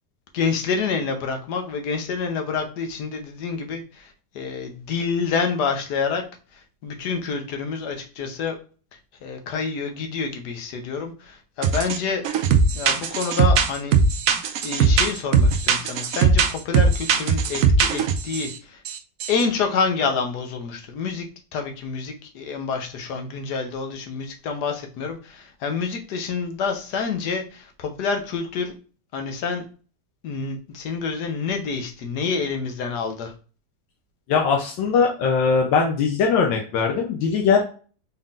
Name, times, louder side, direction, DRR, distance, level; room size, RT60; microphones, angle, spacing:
voice 1, 0.3-6.2 6.5-8.5 9.2-12.2 12.7-13.9 14.3-18.8 19.3-21.3 21.5-28.7 29.1-29.6 30.2-33.3, left 5 dB, 70° left, 5 dB, 1.3 m, -28 dB
sound 1, 11.6-12.0 12.2-18.5 18.9-19.0 19.2-19.4, right 5 dB, 75° right, 0.7 m, -19 dB
voice 2, 34.3-37.6, left 5 dB, 85° left, 1 dB, 1.4 m, -20 dB
4.2 x 3.6 x 2.4 m, 0.38 s
omnidirectional pair, 2.0 m